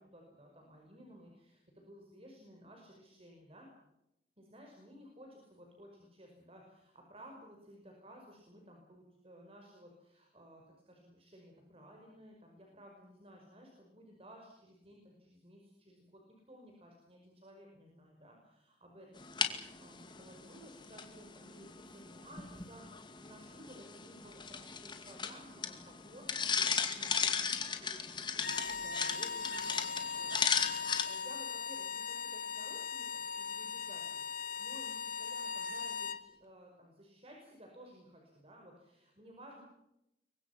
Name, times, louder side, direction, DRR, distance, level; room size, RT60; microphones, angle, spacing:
voice 1, 0.0-3.7 4.4-19.5 19.8-33.1 33.3-34.2 34.6-39.6, equal, 30° right, 1 dB, 5.6 m, -56 dB
sound 1, 19.2-31.0, left 6 dB, 25° left, 2.4 m, -36 dB
sound 2, 28.3-36.2, left 5 dB, 45° left, 1.8 m, -39 dB
28.0 x 24.0 x 6.0 m, 0.87 s
head